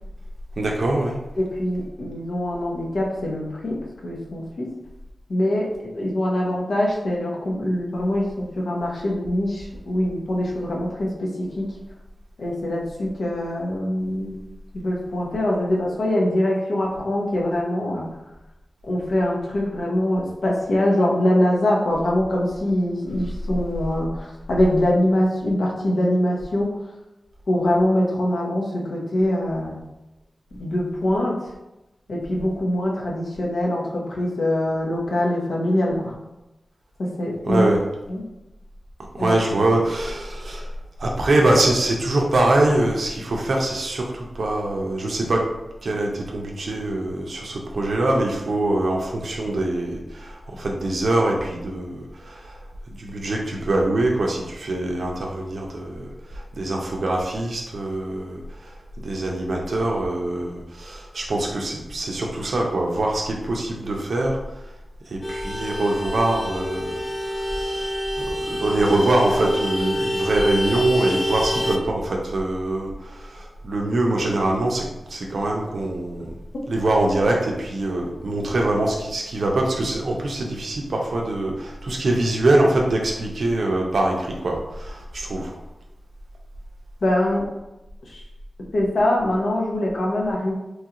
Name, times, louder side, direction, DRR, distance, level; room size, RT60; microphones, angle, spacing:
voice 1, 0.6-1.2 37.5-37.8 39.1-40.7 41.0-45.4 45.8-52.6 52.9-64.7 65.1-68.0 68.2-76.3 76.7-85.6, right 2 dB, 75° right, 0 dB, 0.5 m, -23 dB
voice 2, 1.4-3.8 4.0-4.7 5.3-11.7 12.4-14.4 14.7-18.1 18.9-26.8 27.5-29.8 30.5-31.4 32.1-36.1 37.0-37.7 38.1-38.2 39.2-39.6 87.0-87.5 88.1-88.2 88.7-90.5, left 1 dB, 85° left, -2 dB, 0.7 m, -23 dB
Vehicle horn car horn honking, 65.2-71.8, equal, 25° left, 0.3 m, -26 dB
3.0 x 2.4 x 2.8 m, 0.96 s
wide cardioid pair, 100°, 0 cm